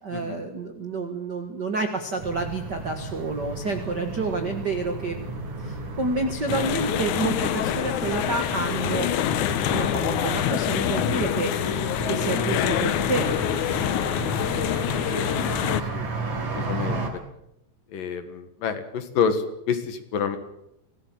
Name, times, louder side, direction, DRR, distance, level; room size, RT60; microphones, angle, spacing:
voice 1, 0.0-5.2 5.6-9.1 9.7-11.6 12.1-13.3, right 3 dB, 75° right, 6 dB, 0.9 m, -29 dB
sound 1, 2.2-17.1, right 3 dB, 50° right, 4.7 m, -33 dB
sound 2, 6.5-15.8, left 11 dB, 75° left, 1.8 m, -26 dB
voice 2, 15.7-17.2 17.9-20.4, left 6 dB, 60° left, 9 dB, 3.0 m, -29 dB
24.5 x 18.0 x 7.7 m, 0.83 s
omnidirectional pair, 4.8 m